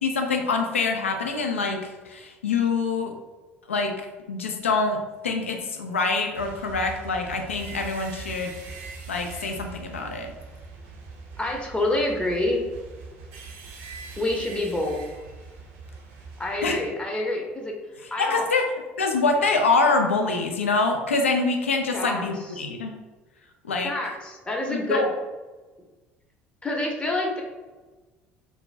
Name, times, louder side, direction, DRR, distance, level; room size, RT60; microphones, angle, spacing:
voice 1, 0.0-3.1 3.7-3.9 4.3-5.0 5.2-8.5 9.1-10.3 16.6-16.8 18.2-18.7 19.0-23.0 23.6-23.9 24.7-25.1, left 3 dB, 85° left, 4 dB, 0.3 m, -25 dB
sound 1, 6.3-16.9, right 4 dB, 65° right, 0.5 m, -42 dB
voice 2, 11.4-12.6 14.2-15.0 16.4-17.7 18.1-18.4 21.9-22.2 22.5-22.6 23.8-25.1 26.6-27.4, left 1 dB, 15° left, 0 dB, 0.6 m, -27 dB
2.4 x 2.2 x 3.1 m, 1.2 s
figure-of-eight pair, 60°, 7 cm